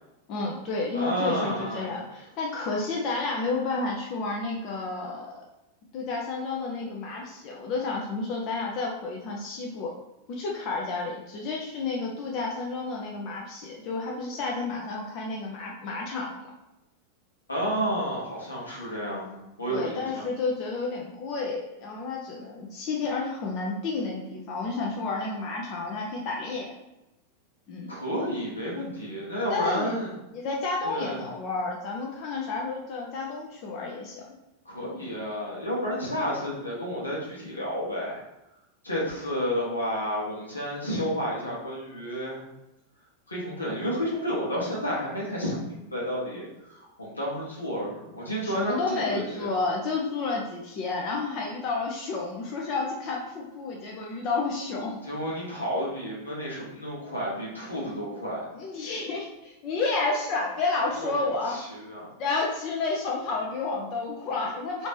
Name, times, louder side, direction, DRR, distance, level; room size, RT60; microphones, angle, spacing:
voice 1, 0.3-5.4 5.9-9.9 10.3-16.4 19.7-26.7 27.7-27.9 29.5-30.0 30.3-34.3 48.4-55.0 58.5-61.6 62.2-64.9, left 3 dB, 40° left, -2 dB, 0.5 m, -31 dB
voice 2, 0.9-1.9 17.5-20.2 27.9-30.1 30.8-31.2 34.6-38.2 38.8-42.4 43.3-49.5 55.0-58.5 61.0-61.1 61.5-62.1, equal, 80° left, -5 dB, 1.1 m, -31 dB
3.1 x 2.7 x 3.3 m, 0.93 s
figure-of-eight pair, 90°, 0 cm